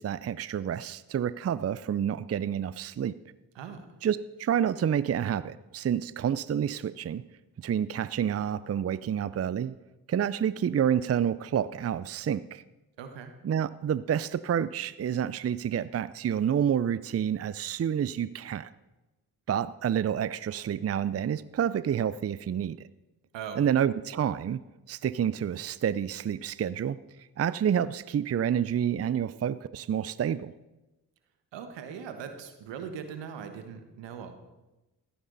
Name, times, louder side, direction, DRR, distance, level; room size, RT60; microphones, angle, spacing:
voice 1, 0.0-3.1 4.0-7.2 7.6-9.8 10.1-12.6 13.4-18.7 19.5-22.8 23.6-24.6 24.9-30.5, right 9 dB, 35° right, 16 dB, 0.5 m, -29 dB
voice 2, 3.5-3.9 13.0-13.3 23.3-23.7 31.5-34.3, right 7 dB, 80° right, 7 dB, 1.5 m, -40 dB
14.5 x 13.0 x 4.1 m, 1.0 s
hypercardioid pair, 40°, 43 cm